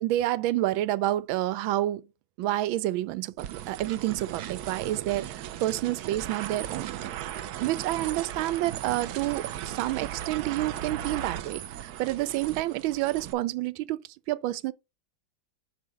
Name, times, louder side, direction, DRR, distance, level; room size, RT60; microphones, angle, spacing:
voice 1, 0.0-2.0 2.4-7.0 7.5-14.7, right 15 dB, 90° right, 1.4 m, -29 dB
sound 1, 3.4-13.3, right 11 dB, 70° right, 0.9 m, -37 dB
6.0 x 4.0 x 6.1 m
omnidirectional pair, 2.1 m